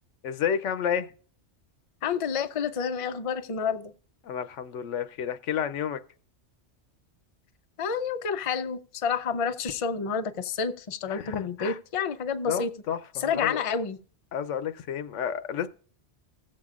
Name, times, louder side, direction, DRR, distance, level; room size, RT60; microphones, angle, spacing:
voice 1, 0.2-1.1 4.2-6.0 11.1-11.8 12.5-13.6 14.3-15.7, left 8 dB, 85° left, 1.0 m, -30 dB
voice 2, 2.0-3.9 7.8-12.7 13.1-14.0, left 6 dB, 45° left, 0.5 m, -29 dB
16.0 x 7.5 x 2.4 m
omnidirectional pair, 1.2 m